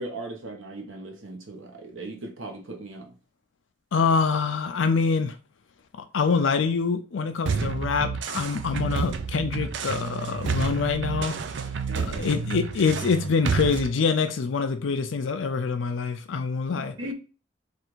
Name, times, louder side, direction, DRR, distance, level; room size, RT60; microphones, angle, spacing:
voice 1, 0.0-3.1 11.9-12.3 16.7-17.1, right 2 dB, 90° right, 1.1 m, -38 dB
voice 2, 3.9-5.3 6.1-11.4 12.1-16.9, left 5 dB, 75° left, 0.5 m, -25 dB
sound 1, 7.4-13.9, right 5 dB, 65° right, 0.4 m, -30 dB
3.3 x 2.5 x 4.5 m
head